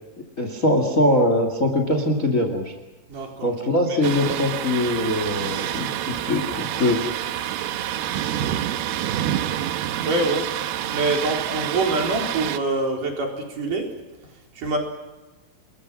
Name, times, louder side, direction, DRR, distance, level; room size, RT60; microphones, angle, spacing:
voice 1, 0.4-2.7 3.4-7.0, left 1 dB, 25° left, 5 dB, 2.1 m, -22 dB
voice 2, 3.1-3.5 3.9-4.0 10.0-10.5 10.9-13.9 14.6-14.8, right 2 dB, 55° right, 1 dB, 5.6 m, -25 dB
Thunder, 4.0-12.6, right 11 dB, 90° right, 3.2 m, -27 dB
29.0 x 21.5 x 6.2 m, 1.1 s
omnidirectional pair, 4.4 m